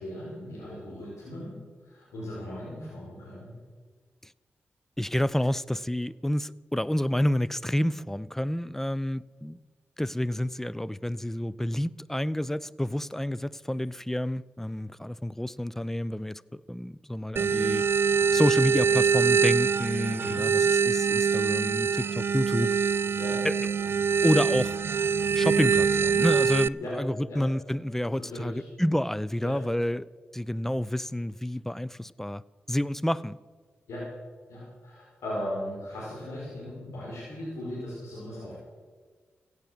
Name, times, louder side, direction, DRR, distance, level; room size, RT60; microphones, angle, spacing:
voice 1, 0.0-3.5 20.2-20.5 23.2-23.4 26.8-27.0 27.3-27.4 28.2-28.6 29.4-29.6 33.9-34.1 34.5-38.5, left 1 dB, 85° left, 5.1 m, -38 dB
voice 2, 5.0-9.6 10.0-17.9 18.3-22.7 23.4-23.5 24.2-24.8 25.3-30.1 30.3-32.4 32.7-33.4, left 1 dB, 5° left, 0.5 m, -29 dB
sound 1, 17.4-26.7, right 6 dB, 55° right, 0.3 m, -24 dB
16.0 x 8.1 x 7.6 m
supercardioid pair, 40°, 5 cm